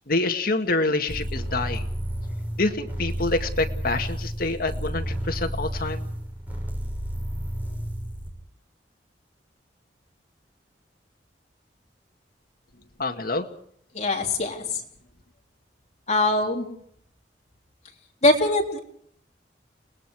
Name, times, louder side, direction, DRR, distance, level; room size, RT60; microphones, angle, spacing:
voice 1, 0.1-1.8 2.6-6.0 13.0-13.5, left 2 dB, 55° left, 5 dB, 2.0 m, -26 dB
sound 1, 1.1-8.3, equal, 10° right, 6.7 m, -31 dB
voice 2, 13.9-14.8 16.1-16.7 18.2-18.8, left 2 dB, 40° left, 2 dB, 3.5 m, -22 dB
30.0 x 20.0 x 4.8 m, 0.65 s
head